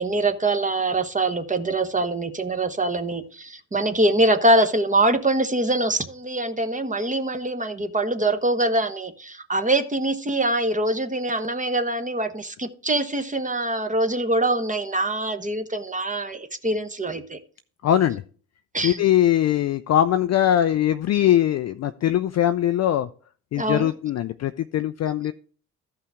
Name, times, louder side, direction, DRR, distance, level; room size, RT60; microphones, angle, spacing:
voice 1, 0.0-17.4 18.7-19.0 23.5-23.9, right 2 dB, 15° right, 8 dB, 1.1 m, -24 dB
voice 2, 17.8-18.2 18.8-23.1 23.5-25.3, left 11 dB, 35° left, 11 dB, 0.4 m, -21 dB
13.5 x 5.6 x 3.5 m, 0.42 s
hypercardioid pair, 50°, 46 cm